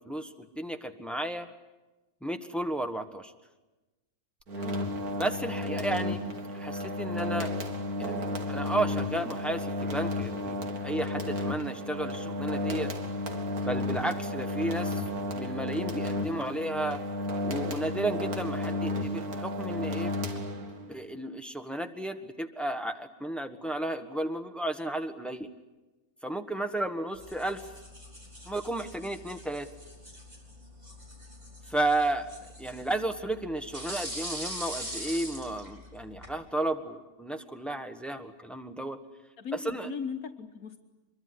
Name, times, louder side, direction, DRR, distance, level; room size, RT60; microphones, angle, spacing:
voice 1, 0.0-1.5 2.2-3.3 5.1-6.2 6.5-7.5 8.0-12.9 13.6-15.0 15.3-17.0 17.4-20.1 20.9-25.5 26.2-27.7 28.5-29.7 31.7-32.3 32.6-39.0 39.5-39.9, right 1 dB, ahead, 7 dB, 1.4 m, -33 dB
sound 1, 4.5-21.0, left 1 dB, 90° right, 2.5 m, -33 dB
voice 2, 4.6-5.1 14.2-14.4 39.4-40.8, left 6 dB, 75° left, 5 dB, 1.6 m, -39 dB
sound 2, 27.1-36.4, equal, 25° right, 5.1 m, -43 dB
25.0 x 23.0 x 9.7 m, 1.1 s
omnidirectional pair, 1.5 m